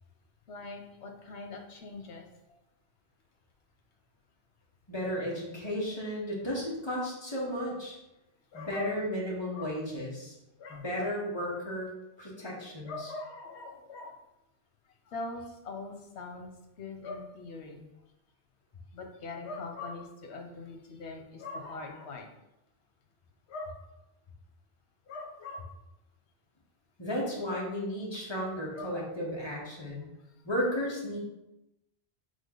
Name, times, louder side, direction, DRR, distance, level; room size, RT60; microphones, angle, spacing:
voice 1, 0.5-2.6 8.5-9.0 9.5-9.7 10.6-11.1 12.8-14.2 15.1-16.5 16.8-17.8 18.9-22.3 23.5-23.8 25.1-25.7 28.7-28.9, left 3 dB, 90° left, 2 dB, 1.1 m, -42 dB
voice 2, 4.9-8.0 8.5-10.3 10.7-11.9 12.2-13.1 27.0-30.1 30.4-31.2, equal, 25° left, -4 dB, 1.2 m, -34 dB
3.7 x 3.7 x 3.7 m, 0.90 s
omnidirectional pair, 1.1 m